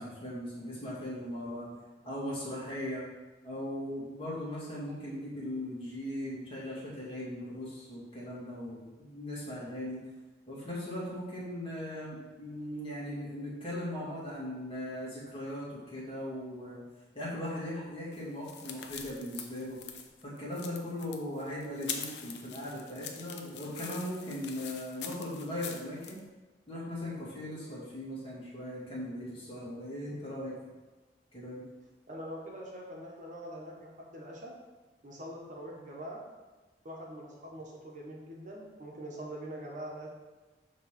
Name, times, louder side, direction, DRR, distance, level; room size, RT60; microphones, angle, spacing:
voice 1, 0.0-1.7 2.0-3.0 3.4-10.0 10.5-16.8 17.1-19.8 20.2-26.2 26.7-30.5 31.3-31.6, left 1 dB, 30° left, -7 dB, 2.3 m, -39 dB
sound 1, 18.1-26.2, left 7 dB, 75° left, 0.7 m, -44 dB
voice 2, 32.1-34.5 35.0-36.2 36.8-40.1, right 1 dB, 45° right, -2 dB, 1.3 m, -43 dB
7.1 x 3.4 x 5.9 m, 1.2 s
head